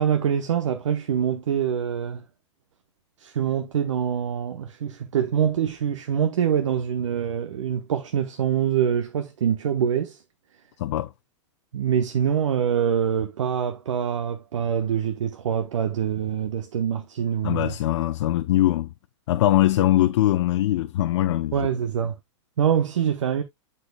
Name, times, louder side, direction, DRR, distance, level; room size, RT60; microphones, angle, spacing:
voice 1, 0.0-2.2 3.2-10.2 11.7-17.8 21.5-22.2 22.6-23.4, right 8 dB, 80° right, 1.0 m, -25 dB
voice 2, 10.8-11.1 17.4-18.9 19.3-21.5, left 14 dB, 65° left, 0.6 m, -21 dB
11.5 x 4.5 x 2.2 m
hypercardioid pair, 120°, 16 cm